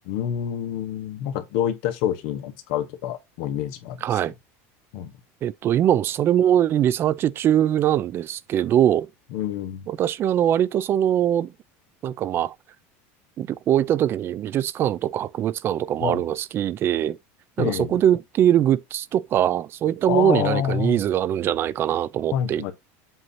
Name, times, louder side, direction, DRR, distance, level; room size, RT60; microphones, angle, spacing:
voice 1, 0.0-4.2 4.9-5.1 9.3-9.9 16.0-16.2 17.6-18.0 20.1-21.0 22.3-22.7, left 10 dB, 65° left, 1.2 m, -27 dB
voice 2, 4.0-4.3 5.4-9.1 9.9-11.5 12.0-12.5 13.4-17.2 17.6-22.7, right 10 dB, 30° right, 0.4 m, -22 dB
7.8 x 2.7 x 5.6 m
supercardioid pair, 145°, 7 cm